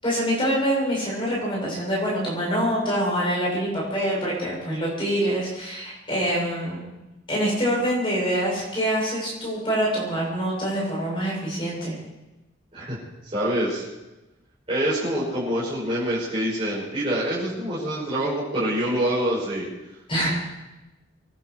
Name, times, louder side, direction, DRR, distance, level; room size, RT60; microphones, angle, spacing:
voice 1, 0.0-6.8 7.3-11.9 20.1-20.3, equal, 25° left, -5 dB, 7.6 m, -25 dB
voice 2, 13.2-13.8 14.7-19.7, right 1 dB, 30° right, -11 dB, 6.0 m, -25 dB
24.5 x 11.5 x 4.8 m, 1.0 s
head